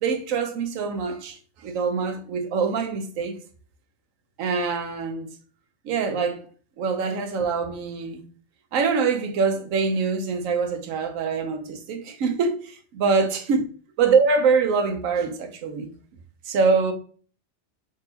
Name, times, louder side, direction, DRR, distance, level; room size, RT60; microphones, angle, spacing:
voice 1, 0.0-3.4 4.4-5.3 5.8-6.4 6.8-8.2 8.7-13.6 14.0-15.9 16.5-16.9, right 5 dB, 75° right, 1.1 m, -24 dB
3.7 x 2.8 x 4.1 m
omnidirectional pair, 1.4 m